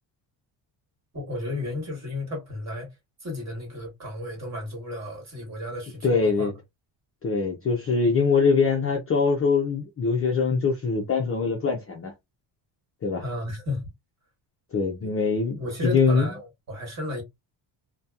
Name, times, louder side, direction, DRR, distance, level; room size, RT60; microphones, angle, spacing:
voice 1, 1.1-2.9 3.2-6.5 13.2-13.9 15.0-15.1 15.6-17.2, left 1 dB, 35° right, 1.4 m, -33 dB
voice 2, 6.0-6.5 7.2-12.1 13.0-13.2 14.7-16.3, left 5 dB, 30° left, 0.4 m, -23 dB
2.7 x 2.2 x 2.3 m
cardioid pair, 165°, 49 cm